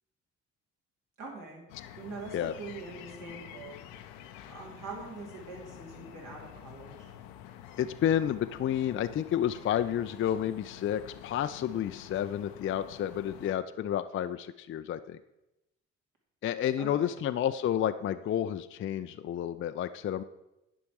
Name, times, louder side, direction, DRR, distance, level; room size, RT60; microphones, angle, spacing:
voice 1, 1.2-1.6 1.9-3.8 4.5-7.1 16.8-17.2, right 3 dB, 55° right, -2 dB, 2.8 m, -43 dB
sound 1, 1.7-13.6, left 10 dB, 70° left, 0.7 m, -49 dB
voice 2, 7.8-15.2 16.4-20.2, left 10 dB, 35° left, 11 dB, 0.4 m, -30 dB
9.9 x 5.2 x 4.6 m, 0.91 s
hypercardioid pair, 45°, 38 cm